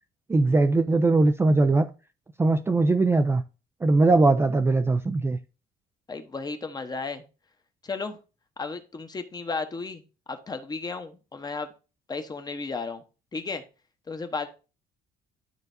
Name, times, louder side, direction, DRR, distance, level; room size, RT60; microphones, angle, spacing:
voice 1, 0.3-1.9 2.4-3.4 3.8-5.4, right 3 dB, 15° right, 0.4 m, -20 dB
voice 2, 6.1-7.2 7.8-8.2 8.6-10.0 10.3-11.7 12.1-13.0 13.3-13.6 14.1-14.5, left 4 dB, 25° left, 0.9 m, -34 dB
12.0 x 4.0 x 2.6 m
cardioid pair, 110°, 17 cm